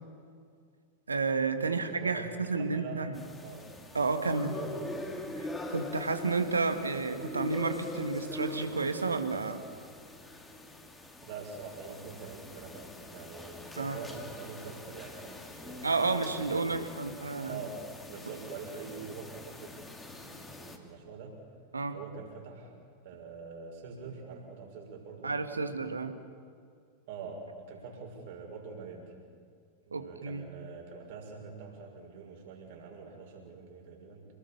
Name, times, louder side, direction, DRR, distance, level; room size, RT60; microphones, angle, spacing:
voice 1, 1.1-3.2 3.9-4.6 5.7-9.6 13.8-14.0 15.8-17.6 21.7-21.9 25.2-26.1 29.9-30.4, right 4 dB, 75° right, 8 dB, 1.9 m, -31 dB
voice 2, 1.7-3.1 3.4-3.8 4.5-5.2 11.2-15.9 16.4-17.0 17.5-19.7 20.2-21.4 21.9-22.8 23.0-25.9 27.1-29.1 29.9-34.3, right 5 dB, 50° right, 1 dB, 6.1 m, -45 dB
sound 1, 3.1-20.8, left 1 dB, 10° left, 2.8 m, -43 dB
28.0 x 20.5 x 7.2 m, 2.2 s
figure-of-eight pair, 90°, 0 cm